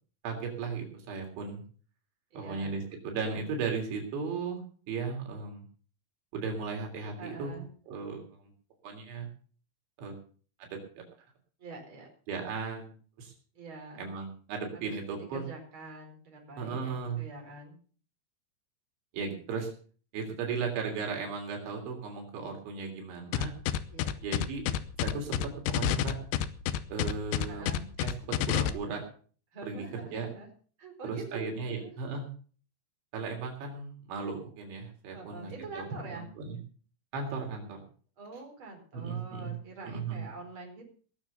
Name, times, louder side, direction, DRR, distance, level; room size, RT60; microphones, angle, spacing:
voice 1, 0.2-1.6 2.4-5.6 6.3-7.6 7.9-8.5 8.8-9.3 10.0-10.2 10.6-11.0 12.3-12.9 13.2-13.3 14.0-15.5 16.6-17.2 19.1-19.7 20.1-23.5 24.2-24.6 25.0-26.2 26.9-29.0 29.6-30.3 31.0-32.3 33.1-35.5 35.8-35.9 36.1-36.6 37.1-37.8 38.9-39.5 39.8-40.3, right 5 dB, 85° right, 2 dB, 5.6 m, -36 dB
voice 2, 2.3-2.7 7.2-7.7 11.6-12.1 13.5-14.1 14.7-15.0 15.3-17.8 23.9-24.1 27.5-27.9 29.5-30.5 30.8-31.9 35.1-36.3 38.2-40.9, right 3 dB, 30° right, 1 dB, 4.9 m, -45 dB
sound 1, 23.3-28.7, left 12 dB, 80° left, 3.0 m, -29 dB
19.0 x 7.2 x 6.7 m, 0.43 s
omnidirectional pair, 5.2 m